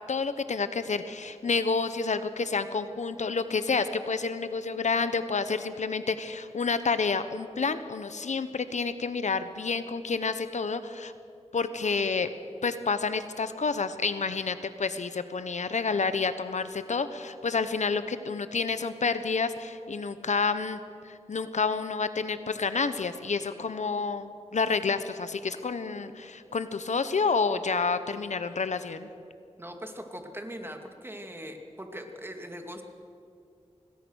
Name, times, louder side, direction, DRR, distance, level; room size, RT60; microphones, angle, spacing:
voice 1, 0.1-11.1 11.5-12.3 12.6-29.1, left 4 dB, 75° left, 11 dB, 1.1 m, -29 dB
voice 2, 29.6-32.8, equal, 20° right, 4 dB, 2.4 m, -40 dB
26.5 x 19.5 x 6.4 m, 2.5 s
wide cardioid pair, 70°, 12 cm